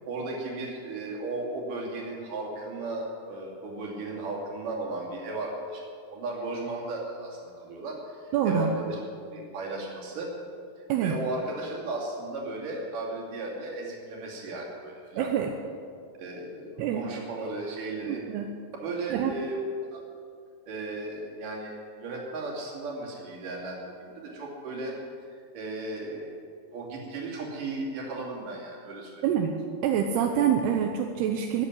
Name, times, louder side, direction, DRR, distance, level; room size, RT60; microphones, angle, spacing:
voice 1, 0.1-5.8 6.1-9.0 9.3-10.3 10.8-15.3 16.2-18.2 18.8-19.6 19.9-20.0 20.7-25.0 25.3-26.3 26.7-29.2, right 2 dB, 55° right, -2 dB, 4.1 m, -35 dB
voice 2, 8.3-8.7 10.9-11.2 15.2-15.5 16.8-17.0 18.1-18.5 19.1-19.3 29.2-29.5 29.8-31.7, right 8 dB, 80° right, 3 dB, 2.9 m, -26 dB
14.5 x 9.6 x 9.9 m, 2.3 s
omnidirectional pair, 4.7 m